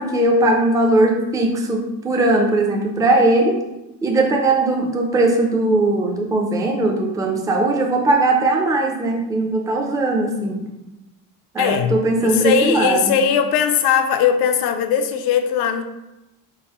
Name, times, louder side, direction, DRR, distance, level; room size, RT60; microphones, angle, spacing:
voice 1, 0.0-3.6 4.0-10.6 11.5-13.2, right 2 dB, 10° right, 1 dB, 0.4 m, -19 dB
voice 2, 11.6-15.8, left 7 dB, 85° left, 8 dB, 0.5 m, -19 dB
3.9 x 3.7 x 2.9 m, 0.96 s
cardioid pair, 150°, 36 cm